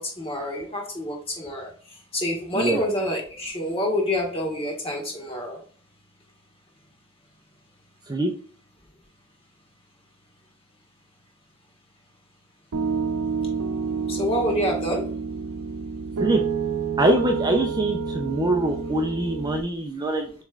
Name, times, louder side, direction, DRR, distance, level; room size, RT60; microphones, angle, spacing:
voice 1, 0.0-5.6 14.1-15.1, equal, 25° left, 1.5 m, -27 dB
Piano, 12.7-19.6, right 5 dB, 90° right, 0.6 m, -28 dB
voice 2, 17.0-20.4, right 1 dB, 20° right, 0.5 m, -23 dB
7.0 x 3.2 x 2.4 m
head